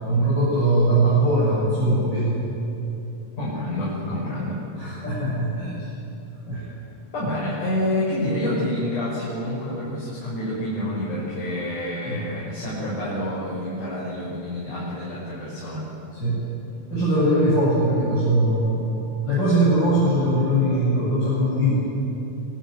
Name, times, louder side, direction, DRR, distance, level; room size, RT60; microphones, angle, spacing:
voice 1, 0.0-2.4 4.8-5.9 6.5-6.6 12.1-12.2 16.1-16.4 16.9-18.8 19.2-21.8, right 1 dB, 35° left, -8 dB, 8.6 m, -21 dB
voice 2, 3.4-4.6 6.5-6.7 7.1-15.9, left 1 dB, 85° left, -7 dB, 7.8 m, -28 dB
25.5 x 25.0 x 9.4 m, 3.0 s
omnidirectional pair, 3.5 m